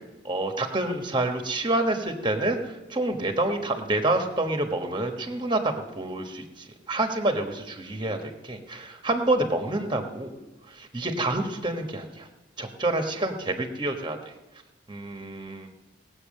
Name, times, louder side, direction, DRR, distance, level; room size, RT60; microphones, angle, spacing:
voice 1, 0.2-10.3 10.7-12.3 12.6-14.2 14.9-15.7, right 2 dB, 25° right, 5 dB, 1.2 m, -28 dB
19.0 x 8.0 x 6.5 m, 1.1 s
head